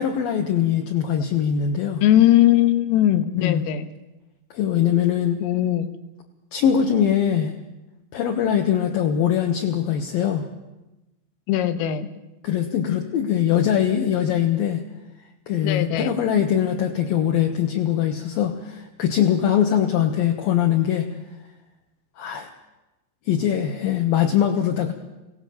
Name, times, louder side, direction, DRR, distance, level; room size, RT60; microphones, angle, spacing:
voice 1, 0.0-2.0 3.4-3.6 4.5-5.4 6.5-7.5 8.1-10.5 12.4-14.8 15.5-21.1 22.2-22.5 23.3-24.9, left 9 dB, 70° left, 2 dB, 2.3 m, -22 dB
voice 2, 2.0-3.9 5.4-5.9 11.5-12.1 15.6-16.2, left 12 dB, 90° left, 9 dB, 3.9 m, -19 dB
24.0 x 18.0 x 7.2 m, 1.0 s
omnidirectional pair, 5.8 m